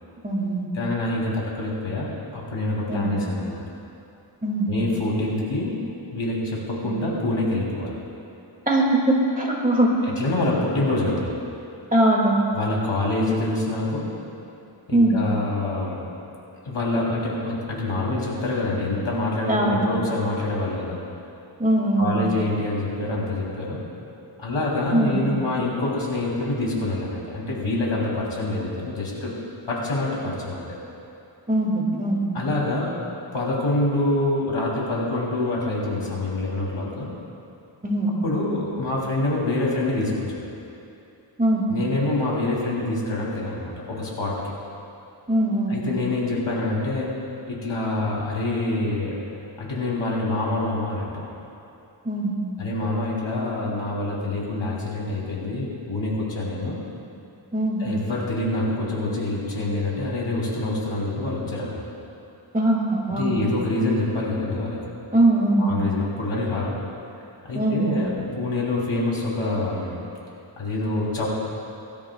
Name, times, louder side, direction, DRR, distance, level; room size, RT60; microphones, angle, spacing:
voice 1, 0.2-0.7 2.9-3.2 4.4-4.7 6.8-6.9 8.7-10.0 11.9-12.3 14.9-15.2 19.5-19.9 21.6-22.2 24.9-25.2 31.5-32.3 37.8-38.2 41.4-41.7 45.3-45.8 52.0-52.4 57.5-57.8 62.5-63.4 65.1-65.7 67.5-67.9, right 1 dB, 15° right, -2 dB, 2.1 m, -21 dB
voice 2, 0.7-3.6 4.7-5.8 6.1-8.0 10.2-11.4 12.6-14.1 14.9-16.0 16.6-21.0 22.0-23.8 24.4-29.3 29.7-30.8 32.3-32.9 33.3-37.1 38.2-40.5 41.7-44.5 45.7-47.2 47.5-49.2 49.6-51.2 52.6-56.8 57.8-61.8 63.2-64.8 65.6-66.7 67.4-70.0 70.6-71.3, left 2 dB, 80° left, -4 dB, 3.2 m, -26 dB
22.5 x 13.0 x 2.3 m, 2.8 s
wide cardioid pair, 90°, 49 cm